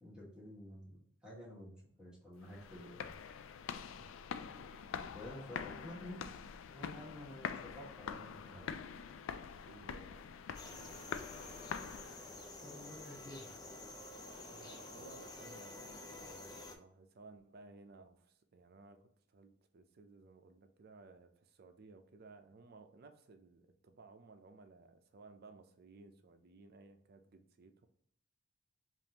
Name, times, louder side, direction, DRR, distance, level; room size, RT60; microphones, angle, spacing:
voice 1, 0.0-3.1 5.1-6.2 6.7-8.7 12.6-13.5, left 1 dB, 5° right, -6 dB, 1.2 m, -51 dB
sound 1, 2.4-12.5, left 7 dB, 70° left, 0.3 m, -45 dB
voice 2, 4.4-4.8 9.5-10.2 14.4-27.9, right 3 dB, 50° right, 7 dB, 0.5 m, -58 dB
sound 2, 10.5-16.8, left 2 dB, 20° left, 0.6 m, -50 dB
5.2 x 2.5 x 2.9 m, 0.65 s
head